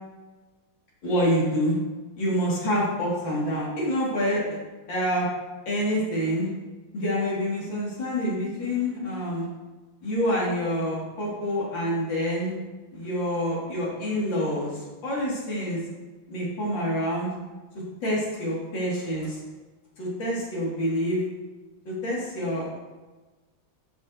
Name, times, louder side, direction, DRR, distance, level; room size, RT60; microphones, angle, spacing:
voice 1, 1.0-1.8 2.2-4.6 4.9-5.3 5.7-6.5 6.9-9.5 10.0-12.5 12.9-15.8 16.3-17.3 18.0-19.4 20.0-21.2 21.9-22.8, equal, 60° left, -5 dB, 2.8 m, -27 dB
10.5 x 5.8 x 2.7 m, 1.2 s
omnidirectional pair, 2.3 m